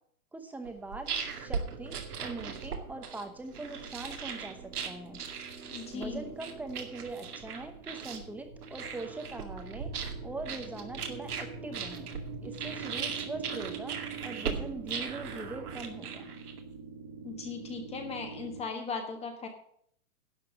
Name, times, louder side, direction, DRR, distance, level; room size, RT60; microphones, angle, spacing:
voice 1, 0.3-1.1 1.4-4.6 4.8-5.2 5.9-9.9 10.2-12.1 12.4-14.0 14.2-16.2, right 2 dB, 5° right, 6 dB, 0.9 m, -41 dB
sound 1, 0.6-16.8, right 6 dB, 85° right, 2.3 m, -39 dB
sound 2, 1.4-18.6, right 5 dB, 35° right, 1.9 m, -46 dB
voice 2, 5.7-6.3 17.2-19.5, left 4 dB, 15° left, 4 dB, 1.3 m, -38 dB
11.5 x 5.6 x 8.3 m, 0.64 s
hypercardioid pair, 145°, 44 cm